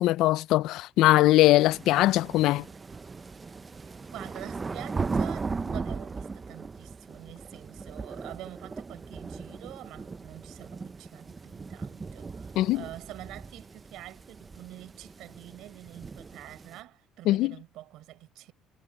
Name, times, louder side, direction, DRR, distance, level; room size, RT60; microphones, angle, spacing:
voice 1, 0.0-2.6 12.6-12.8 17.3-17.5, left 16 dB, 65° left, 0.3 m, -21 dB
sound 1, 1.6-16.8, right 4 dB, 15° right, 0.5 m, -38 dB
voice 2, 4.1-18.5, right 15 dB, 65° right, 4.4 m, -46 dB
cardioid pair, 170°, 0 cm